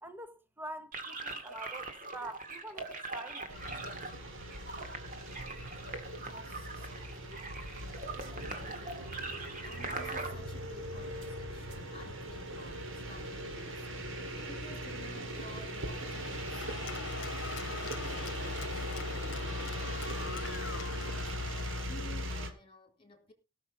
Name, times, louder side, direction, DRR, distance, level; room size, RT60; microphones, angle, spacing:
voice 1, 0.0-3.5, right 1 dB, 10° right, 1.2 m, -46 dB
sound 1, 0.9-10.3, right 3 dB, 40° right, 2.2 m, -42 dB
sound 2, 3.5-22.5, equal, 60° right, 2.2 m, -39 dB
voice 2, 6.2-21.3 21.8-23.3, left 2 dB, 25° left, 3.8 m, -55 dB
Cheering / Applause, 12.2-21.9, left 6 dB, 60° left, 1.2 m, -45 dB
17.5 x 6.4 x 5.4 m
head